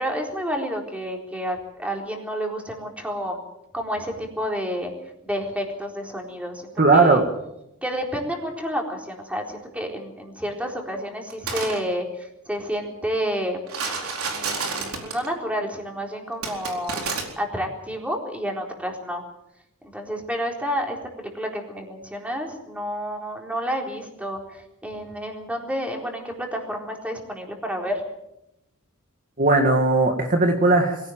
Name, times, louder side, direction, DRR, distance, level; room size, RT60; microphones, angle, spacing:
voice 1, 0.0-3.4 3.7-4.9 5.2-7.2 7.8-13.6 14.3-17.1 17.4-19.2 19.9-28.0, equal, 5° right, 1 dB, 4.1 m, -30 dB
voice 2, 6.8-7.3 29.4-31.0, right 3 dB, 40° right, 3 dB, 2.0 m, -18 dB
sound 1, 11.3-11.8 13.7-15.3 16.4-17.2, right 4 dB, 75° right, 4.4 m, -29 dB
23.0 x 17.0 x 7.6 m, 0.83 s
head